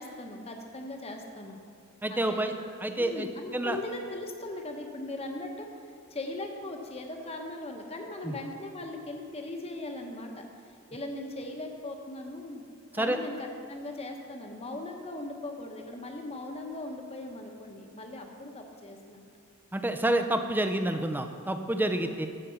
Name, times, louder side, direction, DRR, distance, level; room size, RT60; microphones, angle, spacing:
voice 1, 0.0-1.6 2.1-2.5 3.0-5.7 6.1-10.5 10.9-12.6 12.9-19.2, left 2 dB, 25° left, 3 dB, 1.0 m, -39 dB
voice 2, 2.0-2.5 2.8-3.3 3.5-3.8 8.2-8.4 12.9-13.2 19.7-22.3, right 1 dB, 10° right, 7 dB, 0.5 m, -28 dB
14.5 x 5.1 x 5.7 m, 2.3 s
head